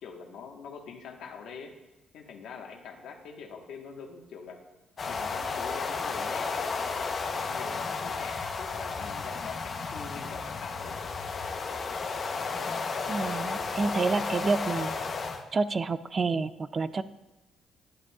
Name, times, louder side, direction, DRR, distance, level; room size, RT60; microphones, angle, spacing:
voice 1, 0.0-1.7 2.1-4.6 5.1-6.5 7.3-11.0, left 5 dB, 80° left, 2 dB, 1.2 m, -44 dB
sound 1, 5.0-15.4, left 4 dB, 45° left, 0.8 m, -33 dB
voice 2, 13.1-15.0 15.5-17.0, right 4 dB, 35° right, 14 dB, 0.4 m, -28 dB
10.5 x 9.5 x 2.3 m, 1.0 s
cardioid pair, 90°, 0 cm